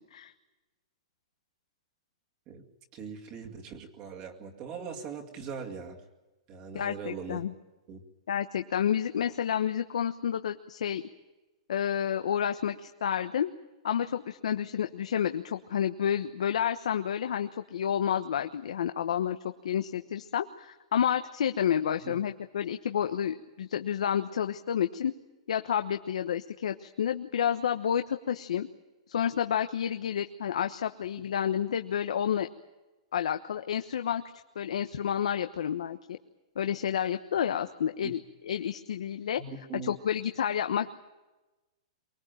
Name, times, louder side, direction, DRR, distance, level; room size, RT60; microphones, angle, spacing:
voice 1, 2.9-6.0 6.5-7.5 7.9-8.0 22.0-22.2 38.0-38.1 39.4-39.9, right 6 dB, 25° right, 1 dB, 2.3 m, -40 dB
voice 2, 6.7-7.5 8.3-11.0 11.7-13.5 13.8-19.4 19.6-25.1 25.5-28.7 29.1-32.5 33.1-34.2 34.5-36.2 36.6-39.4 39.7-40.9, left 9 dB, 80° left, 8 dB, 1.2 m, -30 dB
24.0 x 20.5 x 9.1 m, 1.1 s
hypercardioid pair, 170°, 3 cm